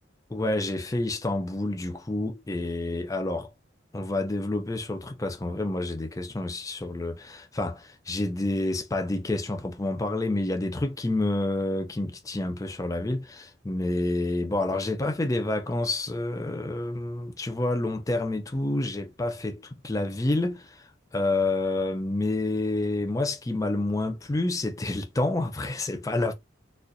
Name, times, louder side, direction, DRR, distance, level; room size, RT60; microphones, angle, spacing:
voice 1, 0.3-3.5 3.9-26.3, left 2 dB, 15° left, 0.5 m, -28 dB
4.1 x 2.4 x 2.5 m
head